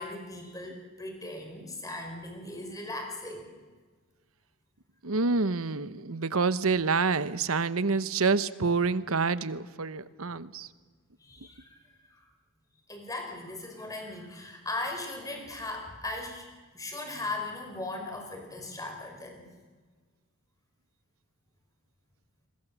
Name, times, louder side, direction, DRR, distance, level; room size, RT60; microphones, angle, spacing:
voice 1, 0.0-3.5 11.2-11.8 12.1-12.2 12.9-16.5 16.7-19.4, left 2 dB, 15° left, 4 dB, 4.4 m, -38 dB
voice 2, 5.0-10.7, right 4 dB, 80° right, 15 dB, 1.0 m, -27 dB
27.5 x 22.5 x 7.3 m, 1.5 s
head